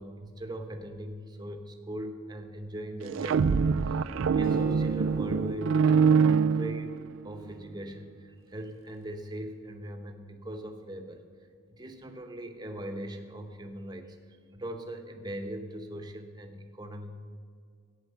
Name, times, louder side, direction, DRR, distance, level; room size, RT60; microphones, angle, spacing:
voice 1, 0.0-11.2 11.8-14.2 14.5-17.2, equal, 20° right, 5 dB, 1.0 m, -40 dB
sound 1, 3.0-7.3, right 6 dB, 65° right, 0.3 m, -24 dB
Acoustic guitar, 4.4-7.8, right 1 dB, 65° left, 2.3 m, -45 dB
11.5 x 9.1 x 6.9 m, 2.2 s
head